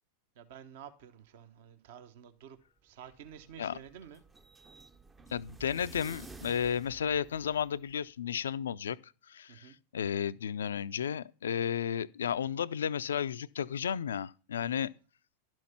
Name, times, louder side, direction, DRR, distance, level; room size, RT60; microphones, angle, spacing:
voice 1, 0.4-2.6 2.8-4.2 9.5-9.8 14.6-14.9, right 9 dB, 50° right, 1.1 m, -51 dB
sound 1, 2.9-7.9, right 3 dB, 15° right, 0.6 m, -52 dB
voice 2, 5.3-14.9, left 8 dB, 65° left, 0.4 m, -33 dB
11.5 x 6.2 x 5.8 m
figure-of-eight pair, 90°, 0 cm